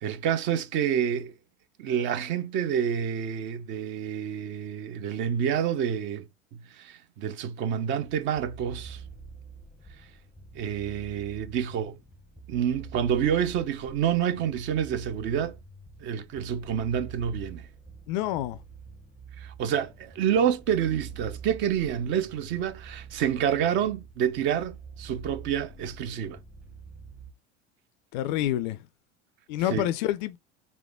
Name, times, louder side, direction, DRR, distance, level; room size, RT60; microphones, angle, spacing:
voice 1, 0.0-1.3 1.8-6.2 6.5-9.0 10.6-12.0 12.5-15.6 16.0-17.6 19.4-26.4 29.7-29.9, right 9 dB, 30° right, 0.5 m, -28 dB
sound 1, 8.3-27.3, right 5 dB, 5° right, 0.8 m, -46 dB
voice 2, 18.1-18.6 28.1-28.8 29.5-30.4, left 13 dB, 40° left, 0.4 m, -28 dB
3.7 x 3.0 x 3.5 m
figure-of-eight pair, 85°, 36 cm